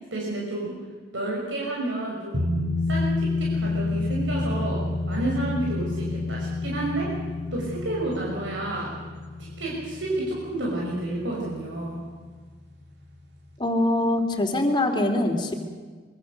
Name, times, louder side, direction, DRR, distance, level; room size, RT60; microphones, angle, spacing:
voice 1, 0.1-0.7 1.1-2.5 2.9-4.8 5.1-7.1 7.5-8.9 9.4-12.0, right 2 dB, 90° right, -3 dB, 5.9 m, -30 dB
sound 1, 2.3-11.4 11.7-11.8, left 2 dB, 60° right, 3.3 m, -29 dB
voice 2, 13.6-15.5, left 1 dB, 25° left, 4 dB, 3.2 m, -23 dB
25.0 x 23.5 x 6.8 m, 1.5 s
head